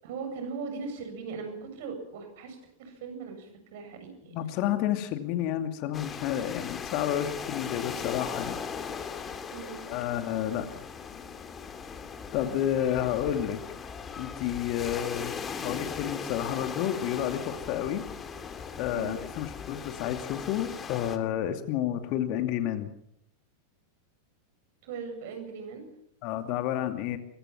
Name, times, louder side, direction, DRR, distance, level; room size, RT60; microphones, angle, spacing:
voice 1, 0.0-4.3 9.5-9.8 18.9-19.1 24.8-25.9, right 5 dB, 50° right, 6 dB, 7.8 m, -39 dB
voice 2, 4.3-8.6 9.9-10.7 12.3-13.6 14.2-15.3 15.6-18.0 18.8-22.9 26.2-27.2, left 11 dB, 45° left, 7 dB, 2.5 m, -30 dB
sound 1, 5.9-21.2, left 6 dB, 20° left, 2.5 m, -39 dB
24.5 x 23.5 x 6.0 m, 0.72 s
figure-of-eight pair, 90°, 0 cm